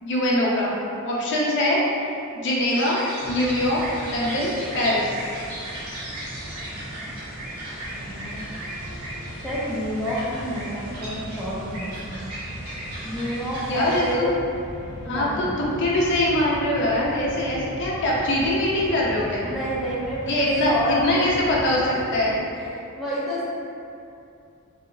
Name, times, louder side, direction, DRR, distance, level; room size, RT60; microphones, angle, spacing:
voice 1, 0.0-0.7 1.0-1.8 2.4-3.0 3.3-5.1 13.7-14.3 15.0-19.5 20.3-22.4, left 1 dB, 55° left, -5 dB, 0.5 m, -23 dB
sound 1, 2.7-14.1, right 1 dB, 85° right, 1.3 m, -36 dB
Mechanisms, 3.2-22.7, equal, 35° right, 0.9 m, -39 dB
voice 2, 7.9-8.5 9.4-12.3 13.0-14.4 15.0-15.6 19.4-21.6 22.1-22.2 22.5-23.5, equal, ahead, -10 dB, 0.5 m, -29 dB
2.7 x 2.0 x 3.8 m, 2.6 s
head